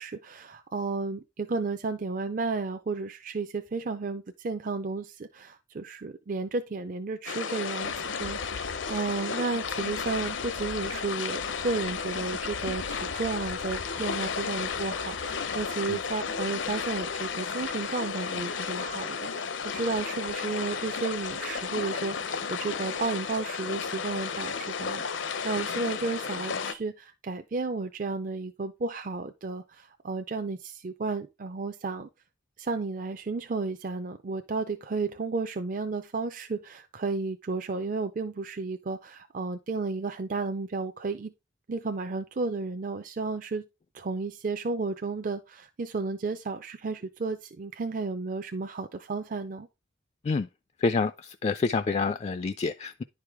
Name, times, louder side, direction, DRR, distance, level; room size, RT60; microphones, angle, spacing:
voice 1, 0.0-32.1 32.6-41.3 41.7-43.6 43.9-49.7, right 3 dB, 45° right, 0.5 m, -33 dB
sound 1, 7.3-26.7, left 6 dB, 75° left, 0.7 m, -33 dB
voice 2, 50.8-53.0, left 4 dB, 35° left, 0.3 m, -28 dB
10.5 x 4.8 x 3.5 m
head